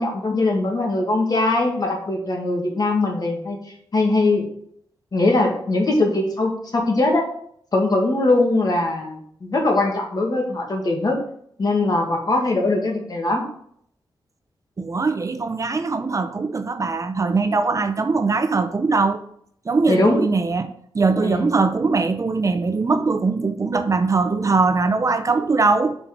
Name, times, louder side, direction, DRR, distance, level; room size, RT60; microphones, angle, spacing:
voice 1, 0.0-4.4 5.1-7.2 7.7-11.2 11.6-13.4 19.9-20.3 21.2-21.5, left 2 dB, 50° left, 1.8 m, -21 dB
voice 2, 14.8-19.2 19.7-26.0, right 4 dB, 40° right, 0.5 m, -21 dB
5.5 x 4.4 x 5.7 m
wide cardioid pair, 85°, 9 cm